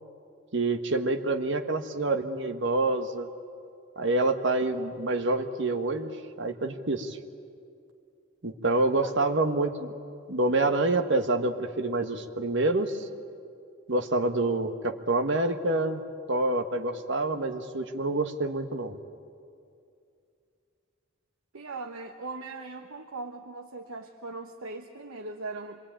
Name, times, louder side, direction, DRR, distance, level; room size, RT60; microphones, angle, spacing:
voice 1, 0.5-3.3 4.0-6.1 6.4-7.2 8.4-9.9 10.3-13.1 13.9-19.0, right 2 dB, 60° right, 6 dB, 1.4 m, -27 dB
voice 2, 21.5-25.8, right 3 dB, 85° right, 3 dB, 1.1 m, -39 dB
26.0 x 23.0 x 9.0 m, 2.4 s
head